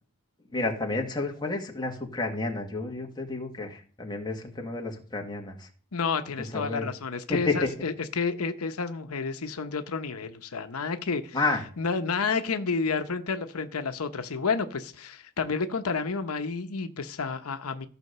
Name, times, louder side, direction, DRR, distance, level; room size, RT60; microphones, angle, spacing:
voice 1, 0.5-5.7 6.5-6.9 7.3-7.7 11.3-11.6, left 3 dB, 20° left, 1 dB, 1.7 m, -30 dB
voice 2, 5.9-11.4 11.8-17.9, left 4 dB, 90° left, 8 dB, 0.9 m, -30 dB
14.0 x 5.1 x 6.7 m, 0.43 s
head